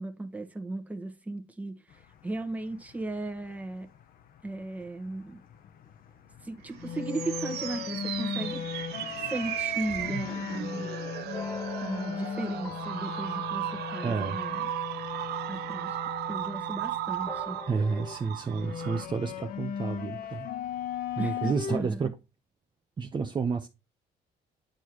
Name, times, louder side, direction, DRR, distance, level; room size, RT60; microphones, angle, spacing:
voice 1, 0.0-3.9 4.4-5.4 6.4-8.6 9.2-10.9 11.3-11.4 11.8-14.7 15.5-16.0 16.3-17.6 21.2-22.1, right 2 dB, 10° right, 1.3 m, -36 dB
sound 1, 1.9-21.8, left 7 dB, 60° left, 1.0 m, -38 dB
sound 2, 6.7-19.1, right 14 dB, 75° right, 0.7 m, -36 dB
sound 3, 11.3-16.0 17.2-18.2, left 4 dB, 15° left, 0.9 m, -45 dB
voice 2, 14.0-14.4 17.7-20.5 21.2-22.2 23.0-23.7, right 5 dB, 25° right, 0.8 m, -30 dB
10.5 x 4.5 x 3.0 m
cardioid pair, 110°, 17 cm